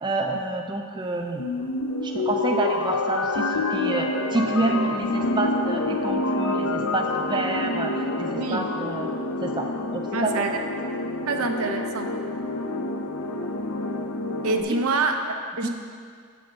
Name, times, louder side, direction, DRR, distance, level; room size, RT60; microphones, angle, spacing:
voice 1, 0.0-1.5 2.0-9.1 9.4-9.7 9.9-10.5 14.7-14.8 15.6-15.7, right 2 dB, 20° right, 2 dB, 0.5 m, -28 dB
sound 1, 1.4-14.6, left 2 dB, 90° left, 0.6 m, -27 dB
voice 2, 8.3-8.7 10.1-10.6 11.3-12.1 14.4-15.7, right 3 dB, 80° right, 4 dB, 0.7 m, -26 dB
7.1 x 5.1 x 7.2 m, 2.1 s
head